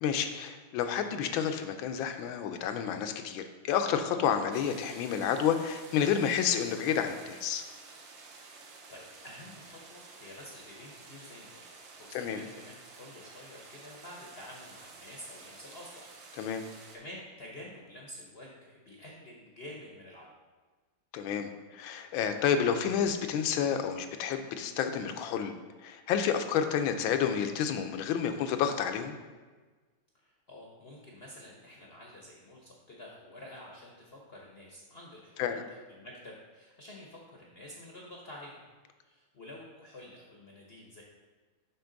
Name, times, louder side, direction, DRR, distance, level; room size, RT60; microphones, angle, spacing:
voice 1, 0.0-7.6 12.1-12.4 16.3-16.6 21.1-25.5 25.8-29.2 35.4-35.6, left 8 dB, 80° left, 7 dB, 1.4 m, -30 dB
sound 1, 4.5-17.0, right 4 dB, 70° right, 1.6 m, -51 dB
voice 2, 8.6-11.7 11.9-16.1 16.5-20.3 30.1-38.6 39.0-41.0, left 1 dB, 45° left, -2 dB, 0.8 m, -49 dB
6.9 x 5.8 x 3.9 m, 1.3 s
omnidirectional pair, 2.2 m